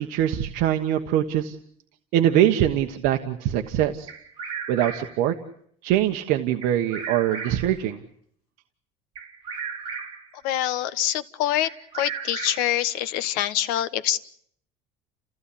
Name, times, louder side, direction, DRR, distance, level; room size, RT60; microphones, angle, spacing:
voice 1, 0.0-1.5 2.1-4.1 4.7-5.3 5.8-8.0, right 11 dB, 65° right, 5 dB, 1.2 m, -23 dB
Bird vocalization bird call bird song, 4.1-5.2 6.6-7.8 9.1-10.3 11.6-12.8, right 6 dB, 30° right, 4.6 m, -35 dB
voice 2, 10.4-11.7 11.9-14.2, left 12 dB, 70° left, 15 dB, 1.1 m, -25 dB
29.0 x 15.5 x 8.6 m, 0.66 s
cardioid pair, 170°, 16 cm